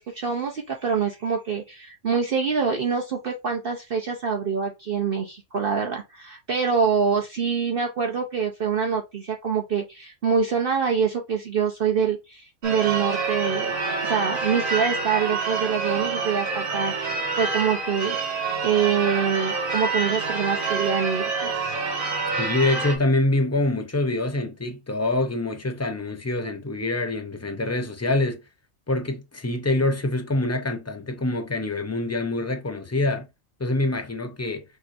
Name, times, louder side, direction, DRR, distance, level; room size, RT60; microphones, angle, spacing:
voice 1, 0.0-13.8 14.0-21.7, right 6 dB, 50° right, 0.8 m, -25 dB
Church bell / Car / Alarm, 12.6-23.0, right 4 dB, 90° right, 1.9 m, -27 dB
voice 2, 22.4-28.4 28.9-33.3 33.6-34.6, left 2 dB, 25° left, 0.3 m, -25 dB
6.2 x 3.0 x 2.6 m
omnidirectional pair, 1.4 m